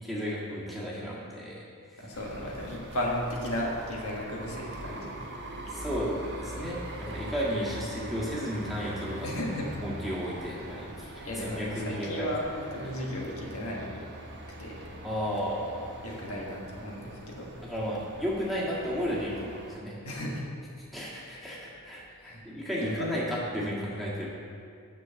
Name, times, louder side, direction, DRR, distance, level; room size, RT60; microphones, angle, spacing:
voice 1, 0.0-1.6 5.7-9.3 9.8-12.3 15.0-15.9 17.6-20.0 20.9-24.3, equal, ahead, -7 dB, 1.8 m, -33 dB
voice 2, 2.0-5.2 6.5-6.7 9.2-9.7 11.2-14.1 14.4-14.9 16.0-17.5 20.0-20.4 22.3-22.4 22.8-23.1, left 1 dB, 70° left, -2 dB, 1.5 m, -35 dB
sound 1, 2.1-19.8, right 1 dB, 50° right, 1.2 m, -42 dB
6.4 x 6.4 x 7.5 m, 2.3 s
head